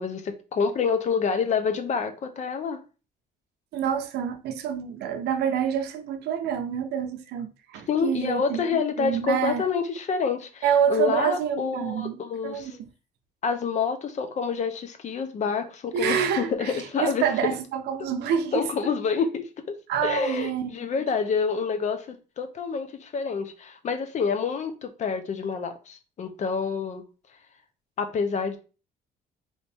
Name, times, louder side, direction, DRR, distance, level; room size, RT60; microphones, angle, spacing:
voice 1, 0.0-2.8 7.9-12.8 13.4-17.2 18.0-18.1 18.5-19.7 20.0-27.0 28.0-28.6, left 5 dB, 45° left, 0.7 m, -27 dB
voice 2, 3.7-8.7 9.0-9.6 10.6-12.2 12.4-12.9 15.9-18.9 19.9-20.9, right 8 dB, 75° right, 0.6 m, -27 dB
3.1 x 2.6 x 3.4 m
cardioid pair, 110°, 17 cm